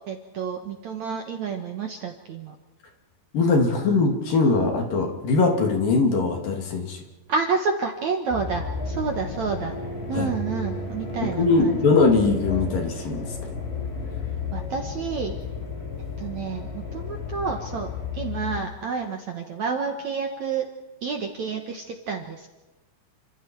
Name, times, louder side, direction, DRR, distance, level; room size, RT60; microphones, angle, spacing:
voice 1, 0.1-2.5 7.3-9.7 10.1-11.8 14.5-15.3 16.2-20.7 21.0-22.6, right 5 dB, 60° right, 4 dB, 2.1 m, -29 dB
voice 2, 3.3-7.0 10.1-10.3 11.2-13.3, left 3 dB, 55° left, 2 dB, 4.2 m, -21 dB
sound 1, 8.3-18.6, left 4 dB, 80° left, 6.8 m, -33 dB
29.5 x 26.0 x 4.7 m, 1.1 s
omnidirectional pair, 4.8 m